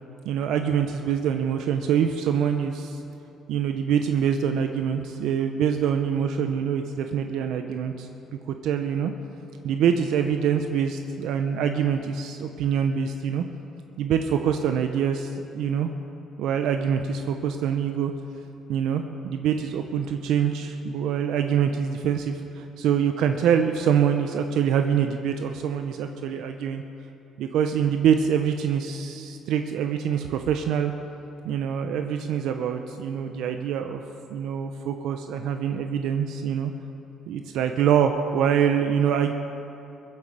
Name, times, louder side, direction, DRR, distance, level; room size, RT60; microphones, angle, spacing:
voice 1, 0.2-3.0 3.5-8.1 8.5-9.1 9.6-13.4 14.0-15.9 16.4-18.1 18.7-26.8 27.4-30.9 31.4-34.0 34.3-36.7 37.3-39.3, right 8 dB, 75° right, 6 dB, 0.8 m, -25 dB
22.5 x 7.8 x 7.5 m, 2.8 s
cardioid pair, 145°, 0 cm